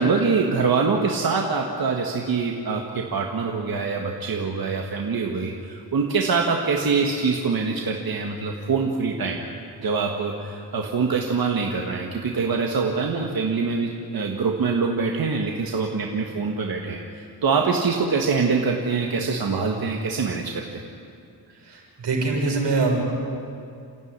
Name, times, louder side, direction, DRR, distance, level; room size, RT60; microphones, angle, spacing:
voice 1, 0.0-9.4 9.8-20.8, right 4 dB, 60° right, 1 dB, 1.9 m, -24 dB
voice 2, 21.7-23.0, right 3 dB, 85° right, -1 dB, 6.6 m, -23 dB
28.5 x 15.5 x 9.8 m, 2.5 s
wide cardioid pair, 145°, 40 cm